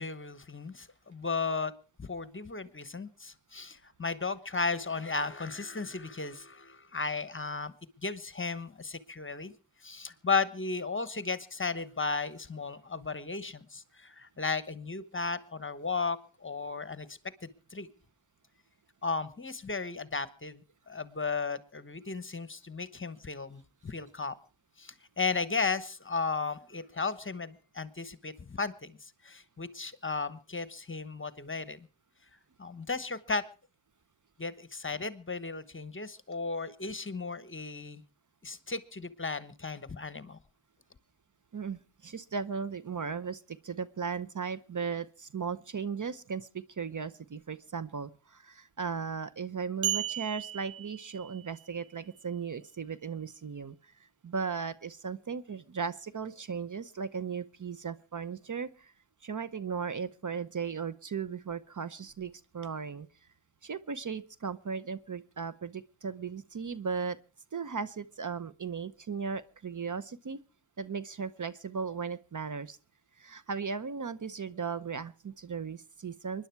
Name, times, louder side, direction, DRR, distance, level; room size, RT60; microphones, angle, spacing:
voice 1, 0.0-1.7 2.0-7.7 8.0-9.5 9.8-17.1 17.7-17.9 19.0-24.3 24.8-29.0 29.2-31.9 32.6-33.4 34.4-38.0 38.4-40.4, left 4 dB, 25° left, 15 dB, 1.1 m, -35 dB
voice 2, 41.5-58.9 59.2-63.1 63.6-67.2 67.5-70.4 70.8-72.8 73.2-76.5, right 6 dB, 40° right, 16 dB, 0.8 m, -37 dB
sound 1, 49.8-51.7, right 10 dB, 75° right, 0.8 m, -35 dB
24.5 x 10.5 x 4.6 m, 0.36 s
cardioid pair, 60°, 45 cm